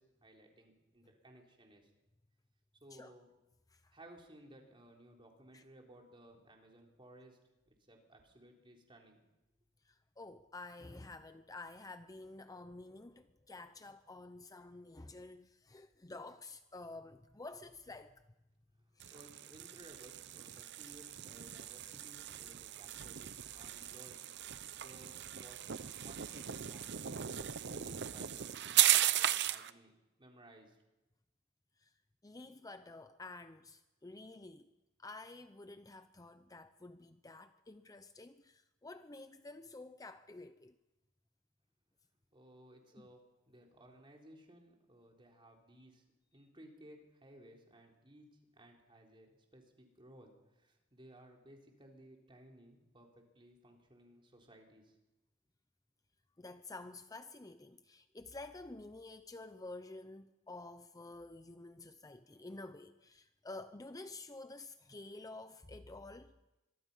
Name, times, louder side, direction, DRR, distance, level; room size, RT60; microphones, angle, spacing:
voice 1, 0.0-1.9 2.8-3.3 3.9-7.4 7.7-9.2 19.1-24.3 24.8-29.9 30.2-30.8 42.3-46.0 46.3-55.0, right 1 dB, 25° right, 3.8 m, -59 dB
voice 2, 9.8-18.2 19.0-19.1 31.8-31.9 32.2-34.7 35.0-40.7 56.4-66.4, left 2 dB, 20° left, 0.7 m, -50 dB
sound 1, 19.0-29.7, right 12 dB, 60° right, 0.8 m, -36 dB
25.5 x 23.0 x 5.6 m
head